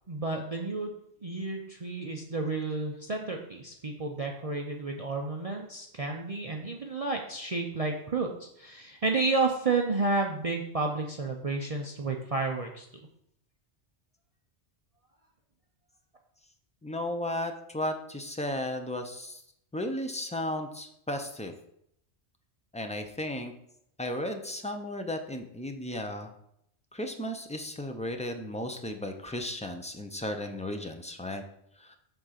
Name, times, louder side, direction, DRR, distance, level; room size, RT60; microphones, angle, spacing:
voice 1, 0.1-0.9 1.2-12.9, right 3 dB, 40° right, 1 dB, 0.6 m, -31 dB
voice 2, 16.8-19.4 19.7-21.5 22.7-23.5 24.0-26.3 26.9-31.4 31.8-32.0, left 1 dB, 10° left, 5 dB, 0.5 m, -34 dB
7.9 x 3.7 x 5.8 m, 0.74 s
omnidirectional pair, 1.2 m